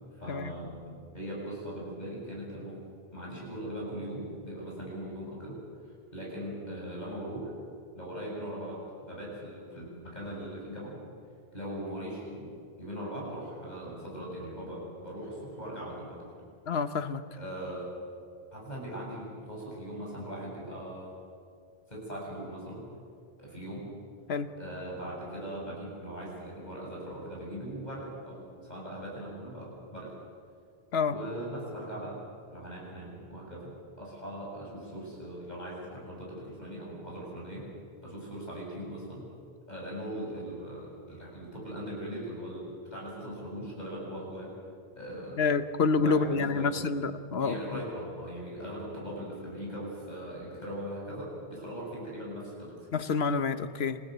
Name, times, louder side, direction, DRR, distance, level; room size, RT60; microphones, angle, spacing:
voice 1, 0.1-2.8 3.1-5.6 5.8-7.5 7.9-8.8 9.1-11.0 11.5-16.4 17.4-17.9 18.5-21.1 21.9-22.8 23.4-23.8 24.6-30.1 31.1-32.2 32.5-33.7 34.0-37.7 38.0-39.2 39.7-44.5 44.9-45.4 46.0-46.8 47.4-52.9, right 1 dB, 45° left, -4 dB, 8.2 m, -40 dB
voice 2, 16.7-17.2 24.3-24.5 30.9-31.2 45.4-47.8 52.9-54.0, left 4 dB, 75° left, 11 dB, 1.3 m, -28 dB
27.5 x 16.5 x 8.1 m, 2.3 s
omnidirectional pair, 1.1 m